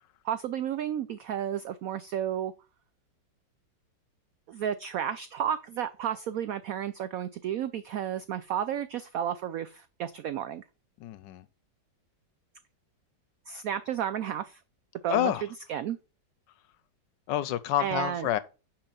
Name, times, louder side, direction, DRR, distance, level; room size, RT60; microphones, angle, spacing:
voice 1, 0.2-2.5 4.5-10.6 13.5-14.6 15.0-15.3 15.7-16.0 17.8-18.3, right 9 dB, 85° right, 0.7 m, -32 dB
voice 2, 11.0-11.4 15.1-15.4 17.3-18.4, left 12 dB, 75° left, 1.2 m, -28 dB
5.8 x 5.5 x 6.8 m
omnidirectional pair, 2.1 m